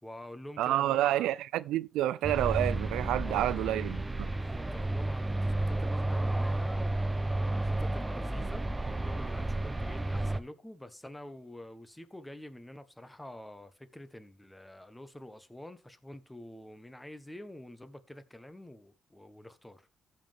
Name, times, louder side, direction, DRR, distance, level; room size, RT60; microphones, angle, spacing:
voice 1, 0.0-1.3 3.2-3.7 4.3-19.9, left 1 dB, 10° left, 1.3 m, -47 dB
voice 2, 0.6-4.3, right 13 dB, 90° right, 0.4 m, -29 dB
sound 1, 2.2-10.4, right 2 dB, 15° right, 0.8 m, -32 dB
14.5 x 5.7 x 3.5 m
cardioid pair, 90°, 0 cm